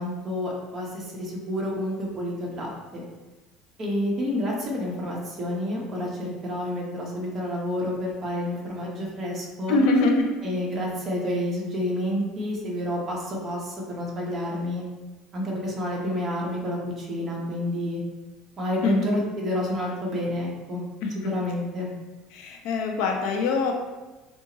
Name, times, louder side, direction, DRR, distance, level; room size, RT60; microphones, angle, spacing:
voice 1, 0.0-3.0 3.8-9.8 10.4-14.8 15.3-18.0 18.6-20.8 21.2-21.9, left 1 dB, 25° right, -3 dB, 1.0 m, -29 dB
voice 2, 9.7-10.4 18.8-19.1 21.0-21.3 22.3-23.7, left 3 dB, 65° left, 2 dB, 0.6 m, -23 dB
6.1 x 2.5 x 3.0 m, 1.1 s
cardioid pair, 160°, 0 cm